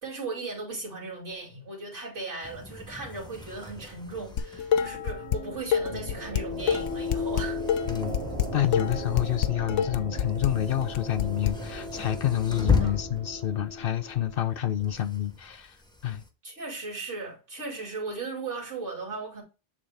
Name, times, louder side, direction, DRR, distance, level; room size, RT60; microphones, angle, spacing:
voice 1, 0.0-7.6 12.7-13.0 16.4-19.4, right 3 dB, 75° right, 2.8 m, -37 dB
sound 1, 2.4-16.3, left 4 dB, 5° left, 0.8 m, -37 dB
sound 2, 4.0-14.6, left 1 dB, 55° right, 1.9 m, -37 dB
Dishes pots and pans, 4.4-5.4 5.7-11.5, left 9 dB, 90° left, 1.0 m, -27 dB
voice 2, 8.5-15.8 16.0-16.2, left 11 dB, 60° left, 0.7 m, -28 dB
8.7 x 3.7 x 3.3 m
omnidirectional pair, 1.2 m